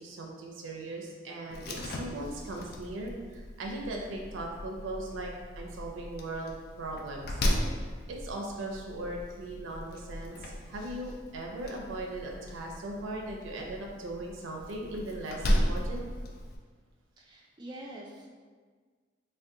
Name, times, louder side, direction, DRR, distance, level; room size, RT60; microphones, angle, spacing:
voice 1, 0.0-7.3 8.1-16.0, right 1 dB, 90° right, 0 dB, 0.4 m, -39 dB
Slam, 1.5-16.6, equal, 50° left, 0.3 m, -36 dB
voice 2, 17.2-18.3, right 1 dB, 25° right, -2 dB, 0.4 m, -45 dB
2.6 x 2.2 x 3.6 m, 1.5 s
head